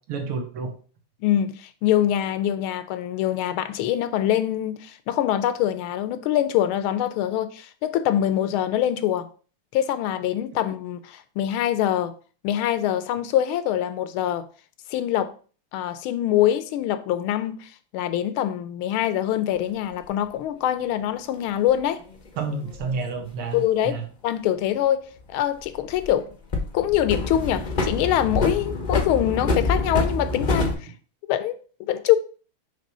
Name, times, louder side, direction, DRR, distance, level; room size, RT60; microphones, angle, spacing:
voice 1, 0.1-0.7 22.4-24.0, right 4 dB, 90° right, 2.1 m, -30 dB
voice 2, 1.2-9.3 9.7-12.1 12.4-14.5 14.9-15.3 15.7-22.0 23.5-26.3 26.7-30.7 31.2-32.2, left 11 dB, 80° left, 1.4 m, -24 dB
sound 1, 20.0-20.1 21.7-23.0 25.2-26.2 26.5-30.7, left 3 dB, 55° left, 0.4 m, -26 dB
6.0 x 3.2 x 5.3 m
omnidirectional pair, 2.3 m